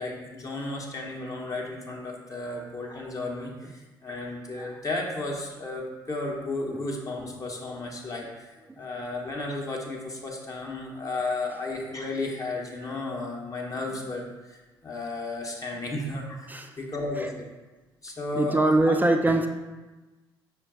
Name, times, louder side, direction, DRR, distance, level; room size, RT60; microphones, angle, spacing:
voice 1, 0.0-16.5 16.8-17.5 18.0-19.0, left 2 dB, 30° left, -1 dB, 0.8 m, -34 dB
voice 2, 18.4-19.5, right 2 dB, 15° right, 6 dB, 0.4 m, -23 dB
5.7 x 2.2 x 3.7 m, 1.2 s
figure-of-eight pair, 45°, 12 cm